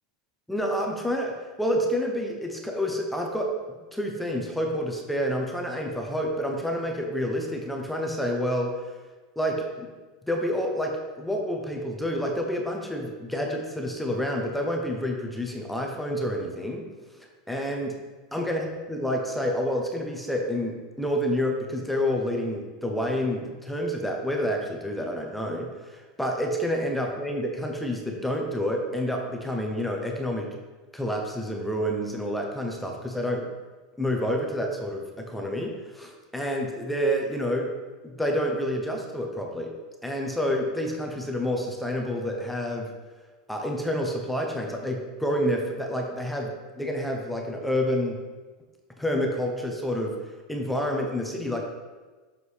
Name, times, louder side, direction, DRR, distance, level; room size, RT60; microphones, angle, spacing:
voice 1, 0.5-3.5 3.9-8.7 9.4-9.9 10.2-16.9 17.5-18.0 18.3-30.5 30.9-33.5 34.0-37.7 38.0-39.7 40.0-42.9 43.5-48.2 49.0-50.2 50.5-51.6, equal, 5° left, 1 dB, 0.7 m, -28 dB
6.4 x 4.6 x 3.4 m, 1.3 s
supercardioid pair, 130°, 3 cm